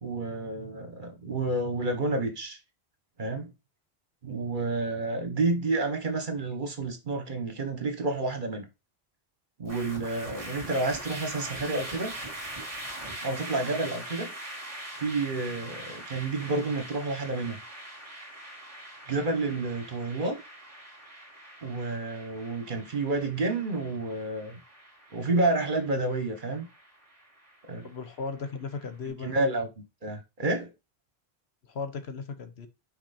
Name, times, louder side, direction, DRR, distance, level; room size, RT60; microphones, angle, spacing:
voice 1, 0.0-2.6 3.2-3.5 4.2-8.7 9.6-12.1 13.2-14.3 14.9-17.6 19.1-20.4 21.6-24.6 25.1-26.7 27.7-27.9 29.2-29.7 30.0-30.7, right 2 dB, 50° right, 1.4 m, -30 dB
sound 1, 9.6-28.9, right 1 dB, 30° right, 2.4 m, -43 dB
voice 2, 27.8-29.3 31.6-32.7, left 4 dB, 75° left, 1.2 m, -36 dB
6.0 x 4.7 x 4.2 m
omnidirectional pair, 1.1 m